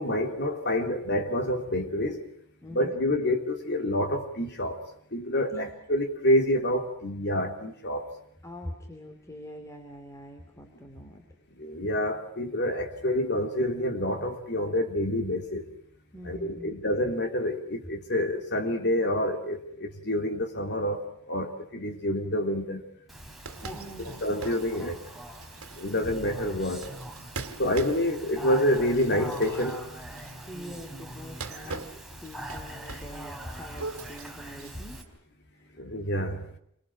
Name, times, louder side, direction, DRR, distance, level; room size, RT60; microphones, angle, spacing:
voice 1, 0.0-2.3 2.7-4.8 5.1-8.1 11.6-15.6 16.2-22.8 23.9-25.0 25.8-26.9 27.6-29.9 31.7-31.8 35.8-36.4, left 1 dB, 50° left, 3.3 m, -28 dB
voice 2, 2.6-3.0 5.5-5.7 8.4-11.2 16.1-16.7 23.7-24.5 25.9-26.2 30.5-31.8 32.2-35.0 35.5-35.8, equal, 15° left, 2.7 m, -44 dB
Speech, 23.1-35.0, right 1 dB, ahead, 4.6 m, -42 dB
sound 1, 23.4-30.5 31.2-33.2 33.5-35.1, right 3 dB, 75° right, 2.3 m, -42 dB
29.5 x 24.5 x 6.2 m
head